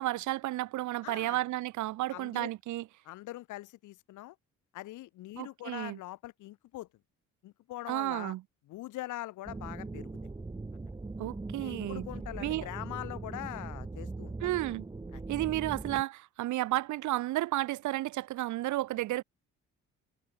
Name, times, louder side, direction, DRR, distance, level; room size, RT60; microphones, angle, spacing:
voice 1, 0.0-2.8 5.4-6.0 7.9-8.4 11.2-12.0 12.4-12.7 14.4-14.9 15.3-19.2, right 16 dB, 75° right, 0.7 m, -32 dB
voice 2, 1.0-1.4 2.1-2.5 3.0-4.4 4.7-6.9 7.4-8.3 8.7-10.1 11.6-14.5 15.1-15.2, left 16 dB, 85° left, 1.0 m, -43 dB
sound 1, 9.5-16.0, right 3 dB, 15° right, 1.1 m, -40 dB
cardioid pair, 90°, 30 cm